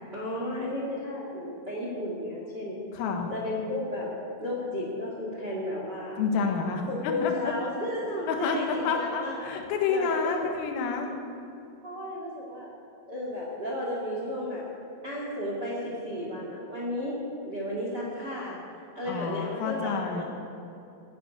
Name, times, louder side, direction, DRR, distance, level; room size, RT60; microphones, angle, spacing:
voice 1, 0.1-2.7 3.3-4.1 4.4-6.2 6.9-9.4 9.9-10.5 11.8-12.7 13.1-14.6 15.0-17.2 17.4-18.6 18.9-20.2, left 1 dB, 40° right, -3 dB, 1.5 m, -33 dB
voice 2, 2.9-3.3 6.2-7.5 8.3-11.1 19.1-20.2, left 5 dB, 90° left, 3 dB, 4.1 m, -29 dB
13.5 x 9.5 x 9.5 m, 2.8 s
omnidirectional pair, 5.8 m